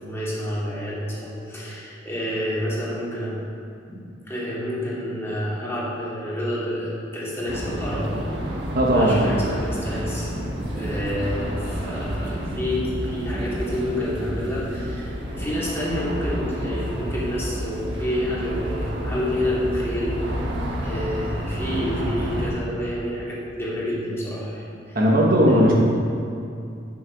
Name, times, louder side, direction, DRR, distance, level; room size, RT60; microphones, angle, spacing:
voice 1, 0.1-3.4 3.9-8.6 8.8-10.3 10.7-25.0 25.5-25.7, equal, 15° left, -8 dB, 2.7 m, -29 dB
sound 1, 7.5-22.5, equal, 70° right, 1.5 m, -29 dB
voice 2, 8.7-9.5 24.9-25.7, equal, 50° right, -3 dB, 1.4 m, -18 dB
9.8 x 7.1 x 5.3 m, 2.5 s
head